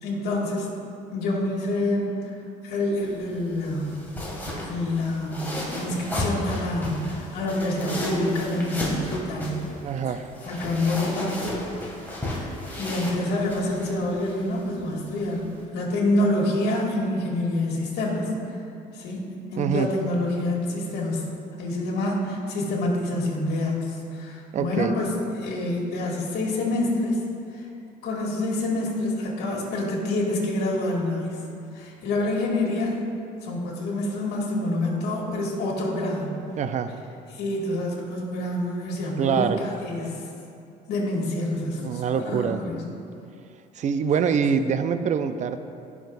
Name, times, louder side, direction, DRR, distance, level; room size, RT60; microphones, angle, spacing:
voice 1, 0.0-0.7 1.1-2.2 2.6-4.0 4.7-9.7 10.1-10.2 10.4-11.4 12.8-18.5 18.9-21.3 21.6-27.2 27.5-27.7 28.0-31.4 31.7-33.0 33.4-36.3 37.3-40.2 40.9-42.8, left 1 dB, 75° left, -2 dB, 2.2 m, -27 dB
sound 1, 3.0-15.6, left 1 dB, 10° left, 2.3 m, -34 dB
voice 2, 9.8-10.3 19.6-19.9 24.5-25.0 36.6-36.9 39.2-39.6 41.8-42.6 43.7-45.6, right 7 dB, 45° right, 10 dB, 0.5 m, -25 dB
18.0 x 6.1 x 2.6 m, 2.6 s
cardioid pair, 110°, 17 cm